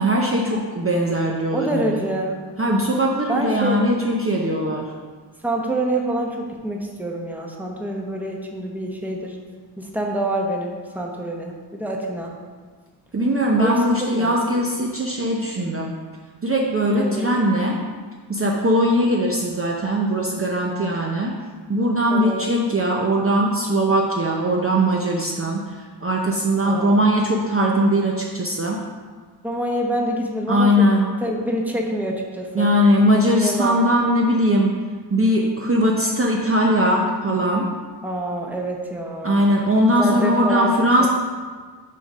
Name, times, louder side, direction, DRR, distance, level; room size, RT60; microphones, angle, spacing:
voice 1, 0.0-2.0 2.6-4.9 13.1-15.9 16.4-17.8 18.3-21.3 21.7-28.8 30.5-31.1 32.5-34.8 35.1-37.7 39.2-41.1, equal, 30° right, -2 dB, 0.6 m, -20 dB
voice 2, 1.5-2.4 3.3-3.8 5.4-9.4 9.8-12.3 13.6-14.3 16.9-17.4 22.1-22.4 26.6-27.0 29.4-30.8 31.2-32.7 33.4-33.8 38.0-39.4 40.0-40.7 41.0-41.1, right 1 dB, 5° right, 0 dB, 0.9 m, -26 dB
6.4 x 3.7 x 5.4 m, 1.5 s
wide cardioid pair, 90°, 43 cm